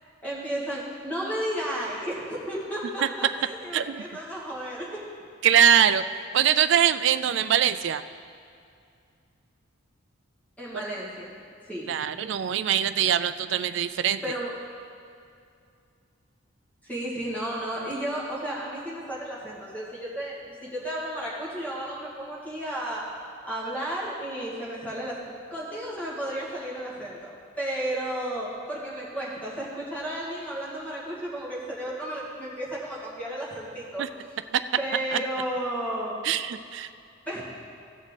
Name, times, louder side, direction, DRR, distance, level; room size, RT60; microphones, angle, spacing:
voice 1, 0.2-5.0 10.6-11.3 11.7-11.9 14.2-14.5 16.8-23.0 23.4-25.2 25.5-34.0 34.8-36.2 37.3-37.4, right 1 dB, 10° left, -7 dB, 2.2 m, -33 dB
voice 2, 3.7-4.0 5.4-6.0 6.3-8.0 11.9-14.2 34.0-34.1 34.5-34.6 35.1-35.2 36.2-36.9, right 9 dB, 60° right, 11 dB, 0.3 m, -22 dB
16.0 x 6.3 x 4.0 m, 2.4 s
head